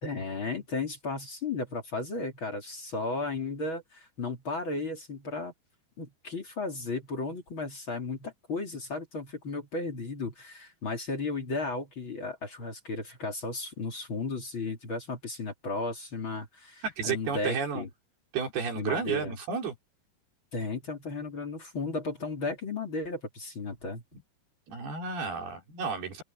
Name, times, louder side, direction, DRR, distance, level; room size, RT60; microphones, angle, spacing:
voice 1, 0.0-5.5 6.0-17.9 18.7-19.4 20.5-24.0, left 3 dB, 35° left, 3.4 m, -34 dB
voice 2, 16.8-17.8 18.3-19.7 24.7-26.2, right 6 dB, 85° right, 6.6 m, -32 dB
open air
omnidirectional pair, 4.4 m